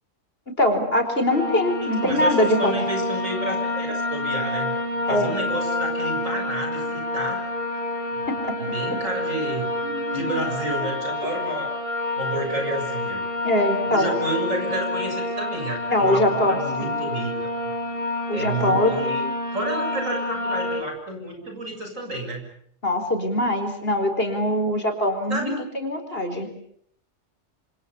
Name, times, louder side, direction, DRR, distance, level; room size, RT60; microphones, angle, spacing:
voice 1, 0.6-2.7 5.1-5.3 8.3-8.6 9.8-10.4 10.7-10.8 13.4-14.1 15.9-16.9 18.3-18.9 22.8-26.5, left 1 dB, 45° left, 5 dB, 5.0 m, -23 dB
sound 1, 1.3-20.8, left 2 dB, 25° left, 4.3 m, -28 dB
voice 2, 1.8-4.7 5.1-7.4 8.1-8.3 8.6-9.7 10.1-13.3 13.9-17.3 17.6-17.7 18.3-19.3 19.5-22.5 25.3-25.5, right 1 dB, 70° right, 3 dB, 7.5 m, -30 dB
28.0 x 26.5 x 7.1 m, 0.67 s
omnidirectional pair, 1.4 m